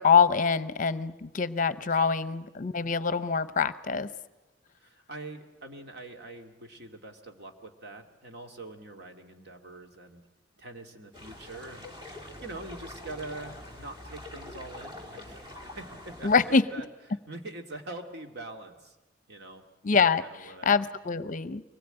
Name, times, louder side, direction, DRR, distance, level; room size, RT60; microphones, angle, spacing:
voice 1, 0.0-4.1 16.2-16.6 19.8-21.6, left 5 dB, 45° left, 15 dB, 0.7 m, -25 dB
voice 2, 4.8-10.2 10.6-19.0 19.3-19.6 20.2-20.9, right 2 dB, 60° right, 4 dB, 2.2 m, -44 dB
sound 1, 11.1-16.6, left 1 dB, 25° right, 2.6 m, -45 dB
24.0 x 19.5 x 8.9 m, 1.1 s
head